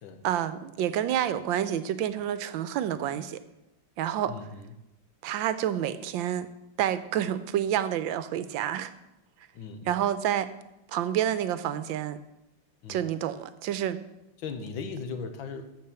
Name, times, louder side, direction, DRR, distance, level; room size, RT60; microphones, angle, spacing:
voice 1, 0.2-3.4 4.0-4.4 5.2-6.5 6.8-8.9 9.9-10.5 10.9-12.2 12.9-14.0, right 10 dB, 80° right, 13 dB, 1.4 m, -28 dB
voice 2, 4.3-4.7 9.5-9.9 12.8-13.1 14.4-15.7, left 5 dB, 85° left, 8 dB, 1.8 m, -38 dB
13.0 x 4.7 x 6.9 m, 0.91 s
omnidirectional pair, 2.1 m